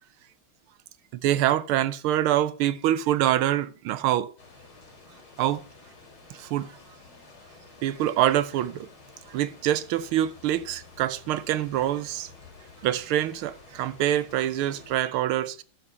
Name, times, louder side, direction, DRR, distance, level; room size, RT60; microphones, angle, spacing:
voice 1, 1.2-4.3 5.4-5.6 6.3-6.7 7.8-8.9 9.3-12.3 12.8-15.6, right 12 dB, 90° right, 1.6 m, -25 dB
sound 1, 4.4-15.0, left 3 dB, 80° left, 3.9 m, -51 dB
11.0 x 7.0 x 5.5 m
omnidirectional pair, 2.3 m